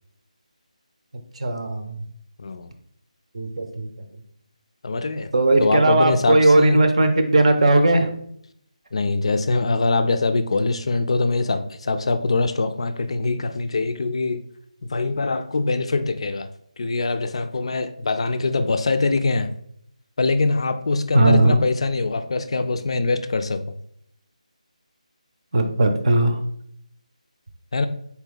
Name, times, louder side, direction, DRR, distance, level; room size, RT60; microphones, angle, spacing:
voice 1, 1.3-2.0 3.3-4.0 5.3-8.1 21.1-21.6 25.5-26.4, right 2 dB, 55° right, 0.6 m, -18 dB
voice 2, 2.4-2.7 4.8-5.3 5.6-6.8 8.9-14.4 14.8-16.5 16.8-19.5 20.2-23.6 27.7-27.9, left 3 dB, 50° left, 0.3 m, -23 dB
4.0 x 2.9 x 3.8 m
figure-of-eight pair, 170°, 4 cm